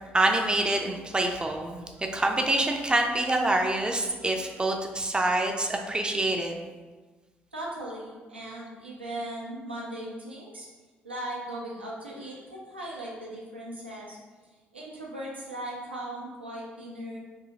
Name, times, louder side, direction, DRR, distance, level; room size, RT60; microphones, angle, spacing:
voice 1, 0.1-1.8 2.1-6.5, right 2 dB, 15° right, 3 dB, 0.4 m, -26 dB
voice 2, 7.5-10.7 11.0-14.2 14.7-17.2, right 1 dB, 85° right, -4 dB, 0.4 m, -38 dB
2.6 x 2.6 x 2.7 m, 1.3 s
figure-of-eight pair, 45°, 6 cm